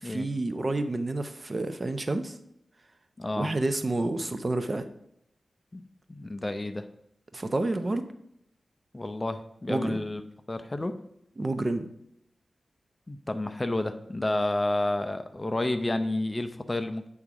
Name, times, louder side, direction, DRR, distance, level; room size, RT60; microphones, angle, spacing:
voice 1, 0.0-2.4 3.4-4.9 7.3-8.0 9.7-10.0 11.4-11.9, right 2 dB, 35° right, 9 dB, 0.6 m, -29 dB
voice 2, 3.2-3.5 5.7-5.8 6.1-6.9 8.9-10.2 10.5-11.0 13.1-17.1, left 1 dB, 25° left, 9 dB, 0.5 m, -30 dB
8.1 x 3.6 x 5.9 m, 0.76 s
wide cardioid pair, 100°, 0 cm